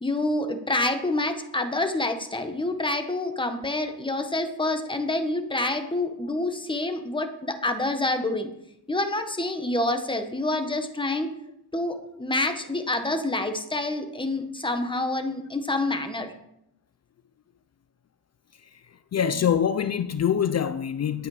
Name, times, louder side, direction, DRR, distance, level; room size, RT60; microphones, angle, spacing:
voice 1, 0.0-8.5 8.9-11.3 11.7-16.3, left 2 dB, 15° left, 1.3 m, -27 dB
voice 2, 18.6-21.3, left 8 dB, 45° left, 0.5 m, -25 dB
11.0 x 9.1 x 4.9 m
wide cardioid pair, 135°, 38 cm